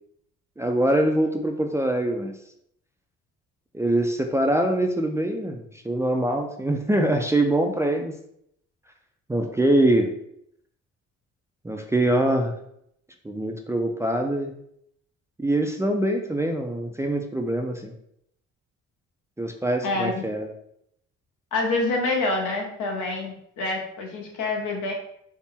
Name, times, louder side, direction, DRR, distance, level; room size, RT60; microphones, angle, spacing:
voice 1, 0.6-2.3 3.7-8.1 9.3-10.1 11.6-12.5 13.2-14.5 15.4-17.9 19.4-20.5, right 1 dB, 10° right, 3 dB, 0.3 m, -23 dB
voice 2, 19.8-20.2 21.5-24.9, left 2 dB, 80° left, 0 dB, 1.0 m, -27 dB
4.2 x 2.1 x 3.5 m, 0.74 s
cardioid pair, 90°, 30 cm